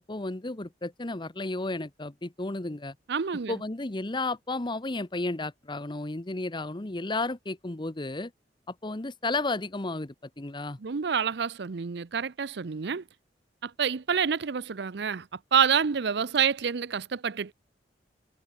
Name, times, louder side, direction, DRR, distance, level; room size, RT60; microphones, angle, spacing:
voice 1, 0.0-3.0 3.5-8.3 8.7-10.8, left 2 dB, 25° left, 1.0 m, -33 dB
voice 2, 3.1-3.6 10.8-13.0 13.6-17.5, right 6 dB, 65° right, 0.6 m, -28 dB
head